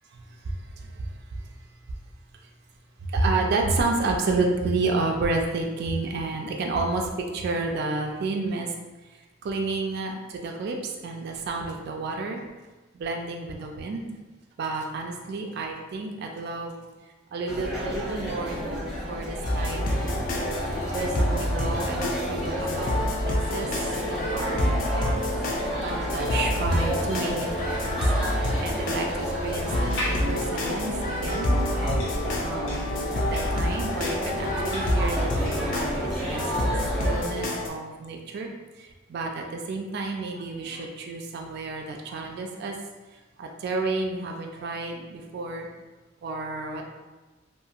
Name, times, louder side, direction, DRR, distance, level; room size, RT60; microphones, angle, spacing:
voice 1, 3.1-7.1 7.3-8.7 9.4-10.8 11.0-12.4 12.9-14.1 14.6-16.8 17.3-20.5 20.9-23.7 24.1-24.7 25.8-27.5 27.8-28.0 28.6-31.5 32.4-35.9 36.2-38.5 39.1-42.7 43.4-45.7 46.2-46.9, right 3 dB, 55° right, 2 dB, 0.3 m, -30 dB
sound 1, 17.5-37.3, equal, ahead, 0.6 m, -32 dB
sound 2, 19.4-37.7, left 1 dB, 45° left, 0.4 m, -28 dB
sound 3, 29.8-35.8, equal, 85° left, 0.9 m, -37 dB
2.8 x 2.4 x 2.4 m, 1.2 s
head